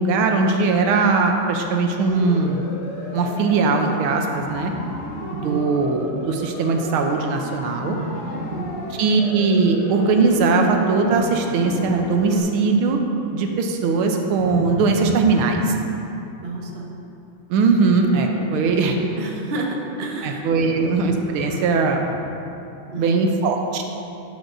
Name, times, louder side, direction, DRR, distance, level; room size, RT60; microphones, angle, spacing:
voice 1, 0.0-2.7 3.1-4.7 5.3-8.0 9.0-13.0 13.3-15.7 17.5-19.0 20.2-22.1 23.0-23.8, right 4 dB, 80° right, 3 dB, 1.5 m, -20 dB
Siren, 2.0-12.4, left 2 dB, 90° left, 1.9 m, -34 dB
Livestock farm animals working animals, 4.4-5.6 5.9-6.4 7.7-8.7 10.3-12.1 14.4-15.8 17.7-18.9 20.6-22.4, equal, 25° left, 0.4 m, -35 dB
voice 2, 5.2-5.7 8.3-8.8 16.4-16.9 19.2-19.7 20.0-20.9 22.9-23.5, right 2 dB, 50° right, -1 dB, 0.7 m, -31 dB
12.0 x 7.2 x 2.5 m, 2.8 s
omnidirectional pair, 2.4 m